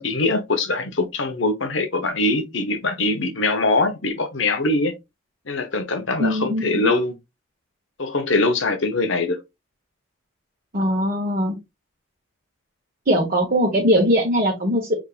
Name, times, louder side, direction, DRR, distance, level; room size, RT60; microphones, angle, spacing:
voice 1, 0.0-4.9 5.5-7.1 8.0-9.4, left 2 dB, 70° left, 1.1 m, -22 dB
voice 2, 6.2-6.9 10.7-11.6 13.1-14.9, equal, 45° right, 1.3 m, -20 dB
5.3 x 3.6 x 2.5 m
head